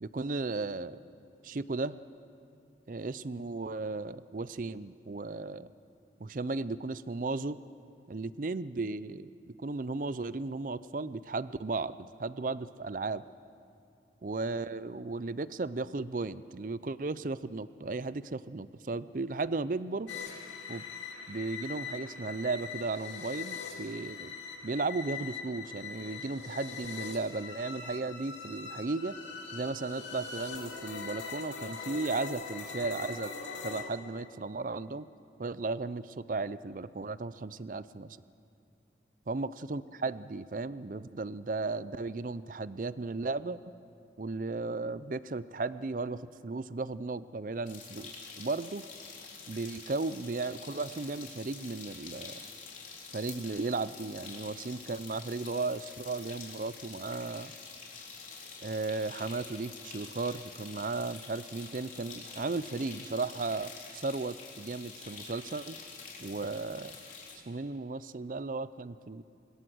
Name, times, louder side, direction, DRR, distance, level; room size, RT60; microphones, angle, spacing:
voice 1, 0.0-1.0 1.4-2.0 2.9-5.7 6.2-7.6 8.1-9.3 9.6-13.2 14.2-20.1 20.7-20.8 21.3-24.3 24.6-29.2 29.5-33.3 33.6-35.1 35.4-38.2 39.3-43.7 44.2-48.9 49.5-52.4 53.1-57.5 58.6-65.8 66.2-67.0 67.5-69.2, right 3 dB, 45° right, 16 dB, 0.5 m, -35 dB
sound 1, 20.1-33.8, left 5 dB, 85° left, 2.6 m, -42 dB
sound 2, 47.7-67.4, left 5 dB, 45° left, 3.7 m, -47 dB
25.0 x 21.0 x 6.2 m, 2.6 s
head